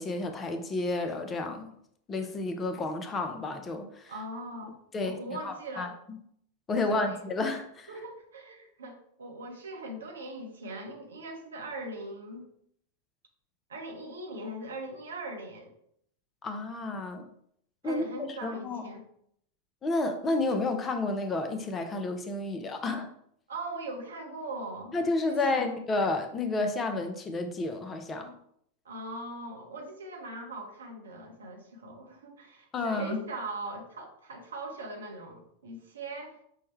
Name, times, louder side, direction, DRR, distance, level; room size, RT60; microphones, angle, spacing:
voice 1, 0.0-1.7 2.1-4.1 4.9-6.2 6.7-7.9 16.4-17.3 17.8-18.9 19.8-23.1 24.9-28.3 32.7-33.2, left 2 dB, 20° left, 6 dB, 0.5 m, -31 dB
voice 2, 4.1-4.8 5.0-5.9 6.8-7.2 7.9-12.5 13.7-15.7 17.8-19.0 23.5-25.0 25.3-25.7 28.8-36.4, right 2 dB, 65° right, 2 dB, 0.7 m, -40 dB
5.4 x 2.2 x 3.0 m, 0.69 s
figure-of-eight pair, 90°, 0 cm